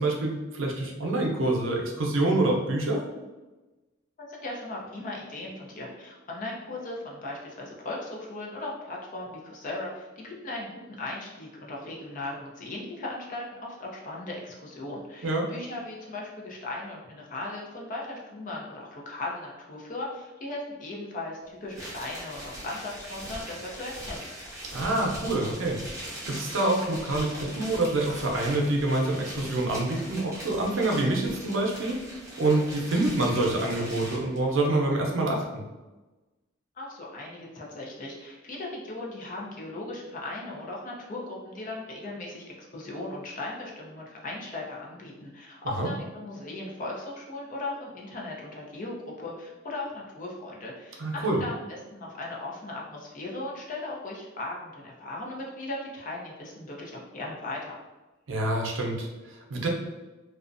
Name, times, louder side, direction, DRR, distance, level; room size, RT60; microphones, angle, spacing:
voice 1, 0.0-3.0 15.2-15.5 24.7-32.1 32.4-35.7 45.7-45.9 51.0-51.4 58.3-59.7, right 2 dB, 90° right, 0 dB, 0.5 m, -26 dB
voice 2, 4.3-24.2 36.8-57.8, left 2 dB, 45° left, -3 dB, 0.5 m, -37 dB
sound 1, 21.7-34.4, right 1 dB, 15° right, 0.7 m, -41 dB
2.4 x 2.1 x 2.5 m, 1.1 s
head